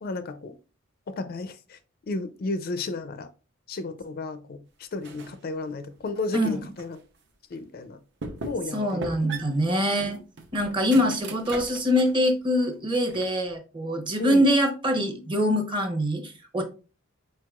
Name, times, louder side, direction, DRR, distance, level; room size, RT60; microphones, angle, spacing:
voice 1, 0.0-0.5 1.1-1.8 2.1-3.3 3.7-7.0 7.5-8.0 8.4-9.3 9.9-10.2 14.2-14.4, left 3 dB, 50° left, 11 dB, 0.4 m, -33 dB
sound 1, 5.0-5.4 5.9-7.0 7.5-7.6 8.2-8.7 9.0-12.2 12.6-13.5, right 3 dB, 60° right, 0.7 m, -39 dB
voice 2, 8.7-10.2 10.5-16.6, equal, 25° right, 3 dB, 0.8 m, -24 dB
4.6 x 4.3 x 2.3 m, 0.34 s
head